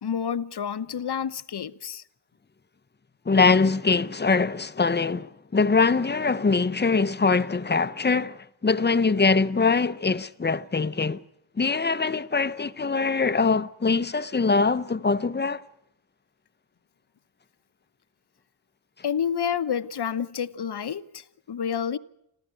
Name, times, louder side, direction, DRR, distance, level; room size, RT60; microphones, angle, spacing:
voice 1, 0.0-2.0 19.0-22.0, left 8 dB, 65° left, 1.0 m, -29 dB
voice 2, 3.3-11.2 11.6-15.6, left 4 dB, 25° left, 0.8 m, -23 dB
29.0 x 13.5 x 9.0 m
wide cardioid pair, 90°, 43 cm